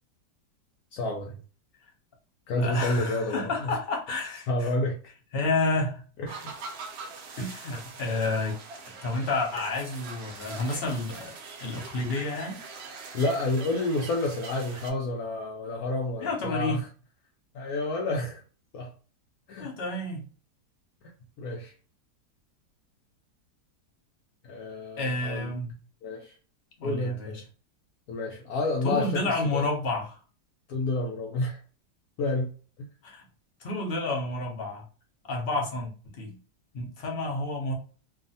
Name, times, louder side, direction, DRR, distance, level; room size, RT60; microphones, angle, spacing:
voice 1, 0.9-1.3 2.5-3.7 4.5-5.0 6.2-6.5 13.1-16.9 17.5-18.4 18.7-18.9 19.5-19.7 21.4-21.7 24.4-25.5 26.0-26.3 26.8-27.4 28.1-29.6 30.7-31.6 32.2-32.5, left 2 dB, 70° left, 0 dB, 1.0 m, -29 dB
voice 2, 2.6-4.7 5.3-6.0 7.4-8.6 8.8-11.3 11.6-12.6 16.2-16.8 19.6-20.2 25.0-25.7 26.8-27.4 28.8-30.2 33.0-33.2 33.6-34.8 35.3-35.9 36.2-36.4 36.7-37.7, left 2 dB, 50° left, 0 dB, 0.7 m, -30 dB
sound 1, 6.3-14.9, right 4 dB, 85° right, 0.5 m, -43 dB
2.6 x 2.4 x 2.6 m, 0.38 s
omnidirectional pair, 1.8 m